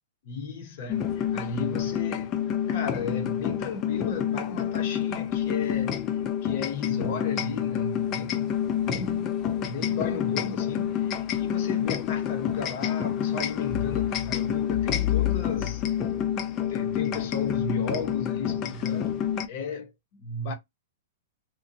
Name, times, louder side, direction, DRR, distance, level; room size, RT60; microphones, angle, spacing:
voice 1, 0.2-2.4 2.7-8.5 8.8-15.8 16.7-20.5, left 4 dB, 45° left, 0.8 m, -35 dB
sound 1, 0.9-19.5, left 10 dB, 25° left, 0.3 m, -28 dB
2.6 x 2.2 x 2.6 m
hypercardioid pair, 160°, 0 cm